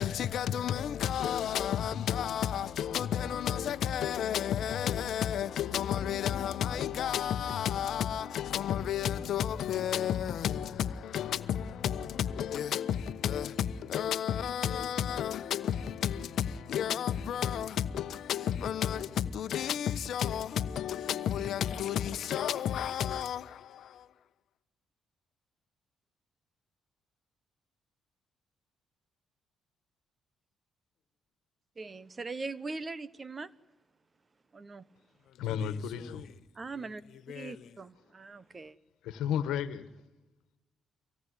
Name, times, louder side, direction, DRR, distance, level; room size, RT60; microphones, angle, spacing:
voice 1, 0.0-24.1 35.5-36.2 37.3-37.7, left 9 dB, 70° left, 1.0 m, -32 dB
voice 2, 31.8-33.5 34.5-34.9 36.5-37.0 37.3-38.8, right 3 dB, 30° right, 1.1 m, -41 dB
voice 3, 35.4-36.3 39.0-39.9, left 8 dB, 90° left, 1.4 m, -33 dB
25.0 x 18.0 x 9.9 m
cardioid pair, 90°, 0 cm